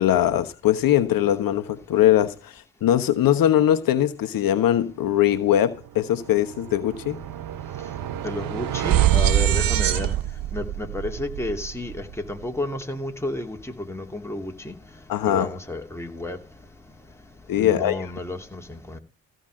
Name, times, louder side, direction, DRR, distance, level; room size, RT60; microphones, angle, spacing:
voice 1, 0.0-7.2 15.1-15.5 17.5-18.1, left 11 dB, 60° left, 1.2 m, -21 dB
sound 1, 5.7-5.9 6.2-12.4, right 12 dB, 60° right, 1.0 m, -25 dB
voice 2, 7.7-16.4 17.3-19.0, left 2 dB, 5° left, 2.7 m, -32 dB
15.0 x 5.2 x 7.6 m
hypercardioid pair, 55°, 39 cm